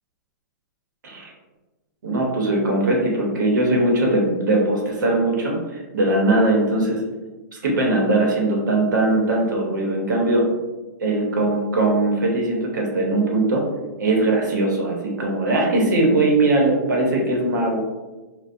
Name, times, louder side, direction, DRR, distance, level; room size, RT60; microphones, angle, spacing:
voice 1, 2.0-7.0 7.5-10.5 11.0-13.7 14.0-17.8, right 2 dB, 85° right, -1 dB, 0.8 m, -20 dB
2.5 x 2.0 x 2.5 m, 1.2 s
hypercardioid pair, 160°, 10 cm